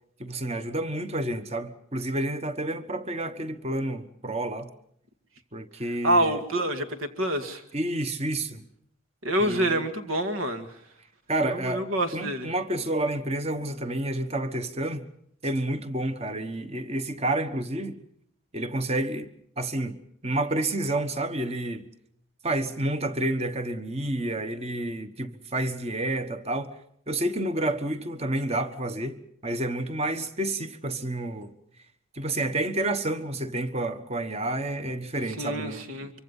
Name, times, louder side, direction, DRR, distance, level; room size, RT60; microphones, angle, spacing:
voice 1, 0.2-4.7 5.5-6.4 7.7-8.6 9.4-9.8 11.3-11.8 12.1-15.1 15.4-18.0 18.5-19.3 19.6-21.8 22.4-26.7 27.1-29.1 29.4-31.5 32.1-36.1, right 1 dB, 30° right, 1.3 m, -29 dB
voice 2, 6.0-7.6 9.2-10.7 11.4-12.5 35.4-36.1, right 1 dB, 75° right, 2.1 m, -27 dB
25.0 x 24.5 x 5.6 m
head